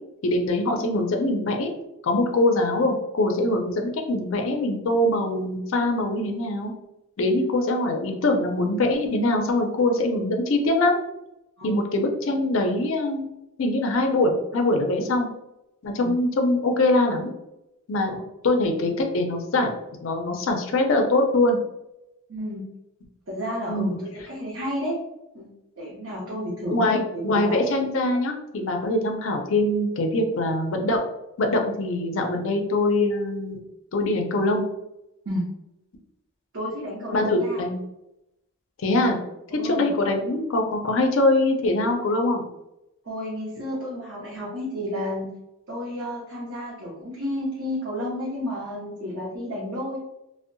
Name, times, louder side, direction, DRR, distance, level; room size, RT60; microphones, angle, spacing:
voice 1, 0.2-1.7 2.0-6.7 7.2-11.0 11.6-13.3 13.6-15.3 15.8-17.3 17.9-18.1 18.4-19.7 20.0-21.6 23.7-24.0 26.7-31.0 31.4-33.6 33.9-34.6 37.1-37.8 38.8-39.2 39.6-42.4, left 2 dB, 60° left, 4 dB, 0.4 m, -23 dB
voice 2, 22.3-22.7 23.3-25.0 25.3-25.5 25.8-27.0 27.3-27.6 35.3-35.4 36.5-37.6 39.5-39.9 43.0-45.3 45.7-50.0, equal, 60° right, -6 dB, 0.6 m, -31 dB
2.6 x 2.1 x 2.5 m, 0.89 s
head